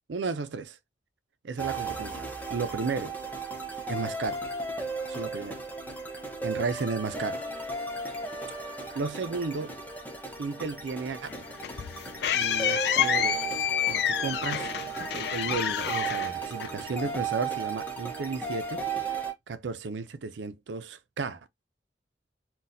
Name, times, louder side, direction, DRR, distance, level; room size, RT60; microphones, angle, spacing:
voice 1, 0.1-0.8 1.4-3.2 3.9-4.4 5.1-5.6 6.4-7.4 8.9-9.8 10.4-11.4 12.3-14.7 15.1-18.8 19.5-21.4, right 4 dB, 85° right, 0.5 m, -34 dB
sound 1, 1.6-19.3, right 4 dB, 10° left, 0.7 m, -35 dB
sound 2, 11.2-17.1, left 9 dB, 60° left, 0.3 m, -29 dB
4.0 x 2.3 x 2.6 m
head